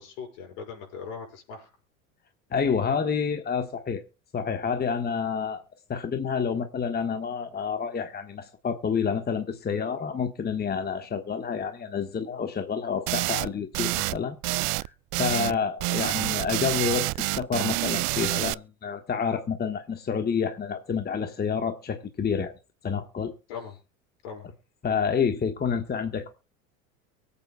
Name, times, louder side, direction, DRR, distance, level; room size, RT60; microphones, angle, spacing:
voice 1, 0.0-1.7 15.3-15.6 23.5-23.8 24.2-24.5, left 6 dB, 65° left, 6.3 m, -40 dB
voice 2, 2.5-4.0 4.3-5.6 5.9-14.8 15.2-22.5 22.8-23.3 24.8-26.3, left 6 dB, 25° left, 1.4 m, -29 dB
sound 1, 13.1-13.5 13.7-14.2 14.4-15.6 15.8-18.5, right 26 dB, 50° right, 0.5 m, -27 dB
23.5 x 8.5 x 2.3 m
hypercardioid pair, 85°, 40 cm